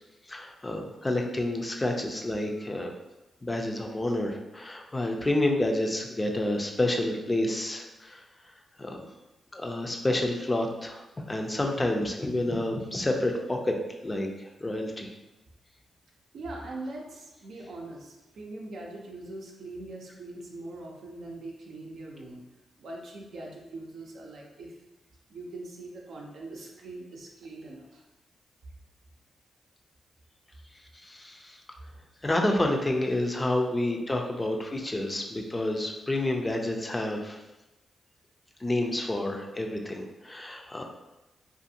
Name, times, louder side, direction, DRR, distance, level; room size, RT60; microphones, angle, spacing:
voice 1, 0.3-2.9 3.4-8.2 8.8-9.1 9.5-13.8 14.0-15.1 31.0-31.6 32.2-37.4 38.6-40.8, left 1 dB, 25° left, 2 dB, 0.4 m, -29 dB
voice 2, 2.5-2.8 16.3-22.4 22.8-24.7 25.3-28.0, right 2 dB, 75° right, -1 dB, 0.5 m, -42 dB
2.5 x 2.4 x 2.7 m, 1.0 s
cardioid pair, 55°, 0 cm